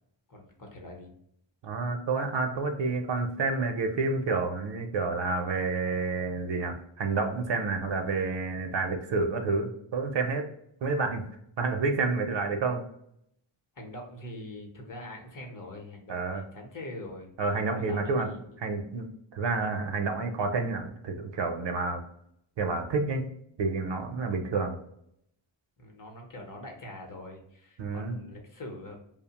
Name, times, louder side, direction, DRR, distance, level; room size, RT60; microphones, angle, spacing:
voice 1, 0.3-1.1 13.7-17.3 17.7-18.6 25.8-29.0, left 1 dB, 45° left, 1 dB, 0.8 m, -43 dB
voice 2, 1.6-10.4 10.8-11.3 11.6-12.8 16.1-16.4 17.4-18.3 18.6-22.0 22.6-23.3 23.6-24.8 27.8-28.2, right 3 dB, 65° right, 5 dB, 0.6 m, -29 dB
2.7 x 2.1 x 2.8 m, 0.73 s
wide cardioid pair, 120°, 47 cm